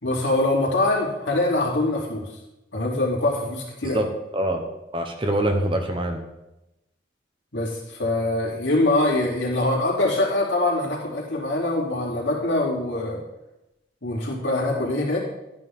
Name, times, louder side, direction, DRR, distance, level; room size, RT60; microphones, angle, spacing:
voice 1, 0.0-2.3 2.7-4.0 7.5-13.2 14.0-15.2, left 2 dB, 80° left, -3 dB, 3.1 m, -23 dB
voice 2, 3.9-4.7 4.9-6.2, right 1 dB, 30° right, 5 dB, 1.1 m, -24 dB
11.5 x 9.5 x 3.7 m, 0.94 s
head